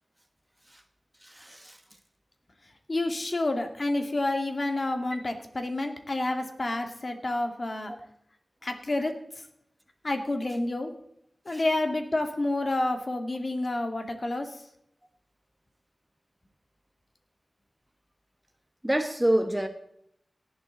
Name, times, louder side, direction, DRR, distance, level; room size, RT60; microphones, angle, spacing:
voice 1, 1.2-1.8 11.5-11.6 18.8-19.7, right 1 dB, 10° right, 6 dB, 1.3 m, -27 dB
voice 2, 2.9-7.9 8.6-9.1 10.0-10.9 11.5-14.5, left 2 dB, 40° left, 5 dB, 2.2 m, -29 dB
18.0 x 12.0 x 3.9 m, 0.72 s
wide cardioid pair, 100°, 0 cm